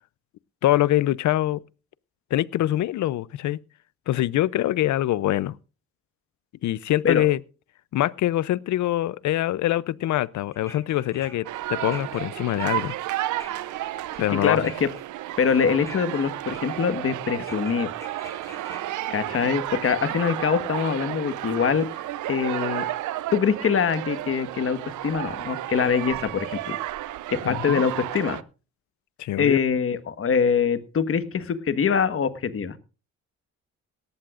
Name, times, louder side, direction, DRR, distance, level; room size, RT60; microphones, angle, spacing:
voice 1, 0.6-1.6 2.3-3.6 4.1-5.6 6.6-7.4 7.9-12.9 14.2-14.7 27.4-27.8 29.2-29.6, left 14 dB, 70° left, 0.7 m, -24 dB
sound 1, 10.5-14.3 14.6-15.1 15.4-16.2 16.5-17.1 17.5-20.1 21.1-21.2 22.3-22.4 22.8-22.9, left 1 dB, 10° left, 5.6 m, -47 dB
sound 2, 11.5-28.4, right 14 dB, 75° right, 0.7 m, -32 dB
voice 2, 14.4-14.9 15.4-17.9 19.1-21.9 22.3-22.8 23.3-26.8 27.3-28.4 29.4-32.8, left 6 dB, 45° left, 1.5 m, -24 dB
18.0 x 14.0 x 2.5 m
cardioid pair, 90°, 30 cm